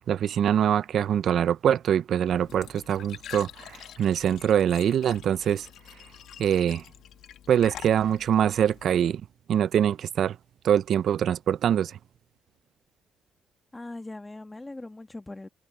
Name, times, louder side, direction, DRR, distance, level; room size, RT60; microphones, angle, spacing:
voice 1, 0.1-5.7 6.4-6.8 7.5-9.2 9.5-10.4 10.6-11.9, right 9 dB, 65° right, 0.4 m, -24 dB
Glass / Trickle dribble / Fill (with liquid), 2.3-9.0, left 10 dB, 75° left, 1.8 m, -46 dB
voice 2, 13.7-15.5, left 2 dB, 15° left, 1.4 m, -40 dB
cardioid pair, 90°, 0 cm